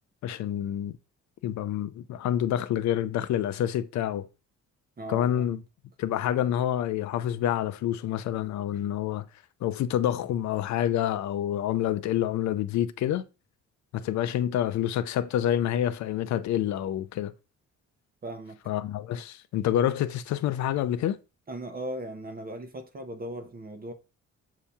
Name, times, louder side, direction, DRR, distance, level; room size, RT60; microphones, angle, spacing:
voice 1, 0.2-1.0 1.4-4.3 5.1-5.6 6.0-9.3 9.6-13.2 13.9-17.3 18.7-21.2, left 11 dB, 70° left, 0.5 m, -27 dB
voice 2, 5.0-5.6 18.2-18.6 21.5-23.9, right 1 dB, 30° right, 0.7 m, -38 dB
6.8 x 2.8 x 2.3 m
cardioid pair, 90°, 30 cm